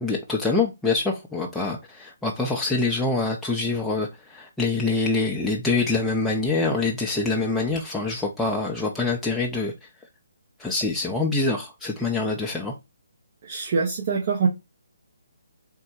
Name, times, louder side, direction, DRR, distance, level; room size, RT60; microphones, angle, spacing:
voice 1, 0.0-9.9 10.6-12.7, left 3 dB, 5° left, 0.4 m, -25 dB
voice 2, 13.4-14.5, right 5 dB, 45° right, 0.7 m, -24 dB
3.5 x 2.2 x 4.3 m
hypercardioid pair, 150°, 0 cm